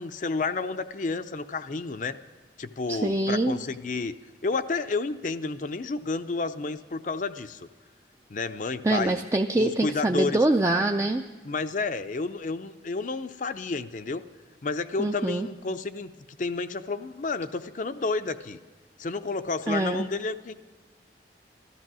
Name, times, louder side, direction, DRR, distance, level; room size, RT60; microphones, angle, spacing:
voice 1, 0.0-2.2 2.6-4.1 4.4-7.7 8.3-9.2 9.5-10.4 11.4-14.2 14.6-16.1 16.4-18.6 19.0-20.5, left 3 dB, 45° left, 10 dB, 0.5 m, -31 dB
voice 2, 2.9-3.6 8.8-11.2 15.0-15.5 19.7-20.1, right 2 dB, 15° right, 4 dB, 0.4 m, -24 dB
14.0 x 13.0 x 6.1 m, 1.4 s
head